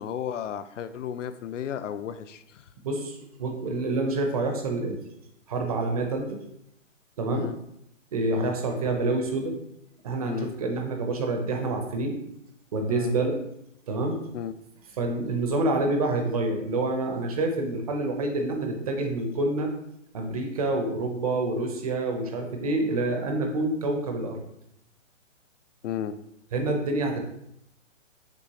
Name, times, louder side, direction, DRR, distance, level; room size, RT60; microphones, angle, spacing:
voice 1, 0.0-2.6 7.3-7.6 8.3-8.6 10.3-10.5 12.9-13.2 14.3-14.5 25.8-26.2, left 9 dB, 70° left, 13 dB, 0.5 m, -33 dB
voice 2, 2.8-5.0 5.5-6.4 7.2-7.4 8.1-9.5 10.0-12.2 12.7-13.3 13.9-14.2 15.0-19.7 20.1-24.4 26.5-27.2, right 2 dB, 30° right, 3 dB, 0.6 m, -27 dB
6.1 x 3.0 x 2.8 m, 0.77 s
hypercardioid pair, 150°, 39 cm